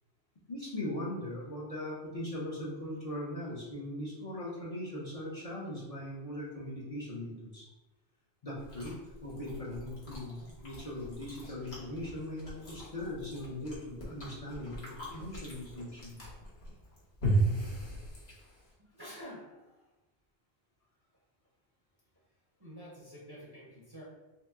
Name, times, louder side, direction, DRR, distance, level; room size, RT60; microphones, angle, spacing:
voice 1, 0.5-7.7 8.4-8.9 9.2-16.3, left 1 dB, 40° left, -6 dB, 0.8 m, -40 dB
Chewing mastication, 8.6-18.7, right 2 dB, 75° left, 1.4 m, -37 dB
voice 2, 18.8-19.9 22.6-24.0, equal, 25° right, -5 dB, 0.7 m, -49 dB
3.1 x 2.9 x 3.5 m, 1.1 s
omnidirectional pair, 1.1 m